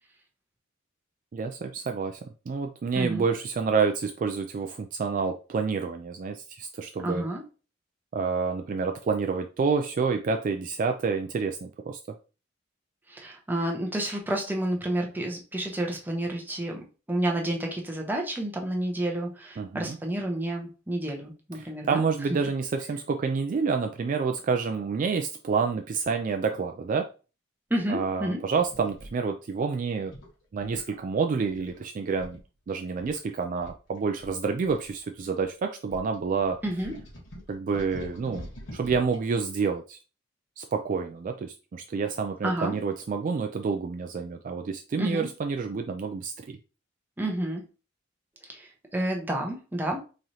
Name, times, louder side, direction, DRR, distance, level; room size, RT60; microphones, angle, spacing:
voice 1, 1.3-2.2 2.5-7.2 8.1-12.0 19.6-20.0 21.6-27.1 27.9-30.1 30.5-32.4 32.7-36.6 37.5-40.0 40.6-46.6, right 5 dB, 45° right, 5 dB, 0.3 m, -28 dB
voice 2, 2.9-3.3 7.0-7.4 13.1-22.0 27.7-28.4 36.6-36.9 42.4-42.8 45.0-45.3 47.2-47.6 48.5-50.0, right 1 dB, 10° right, 1 dB, 0.7 m, -30 dB
sound 1, 28.6-29.1 30.1-31.0 31.5-31.8 32.2-32.4 32.7-32.8 33.0-33.2 33.6-35.4 35.9-39.2, equal, 65° left, 1.2 m, -44 dB
3.8 x 3.1 x 2.8 m, 0.33 s
head